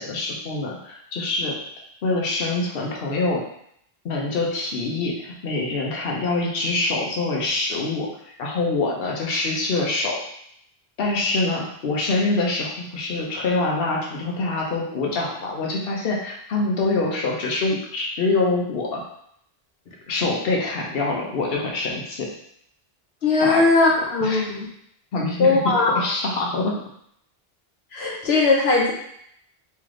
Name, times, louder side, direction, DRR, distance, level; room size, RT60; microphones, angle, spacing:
voice 1, 0.0-1.5 2.0-3.4 4.0-8.1 8.4-10.2 11.0-19.0 20.1-22.3 23.4-23.6 24.2-24.4 25.1-25.6 25.9-26.7, left 3 dB, 70° left, -2 dB, 1.0 m, -25 dB
voice 2, 23.2-24.7 25.4-26.0 27.9-28.9, left 3 dB, 90° left, -2 dB, 1.1 m, -19 dB
3.3 x 3.2 x 3.7 m, 0.71 s
omnidirectional pair, 1.0 m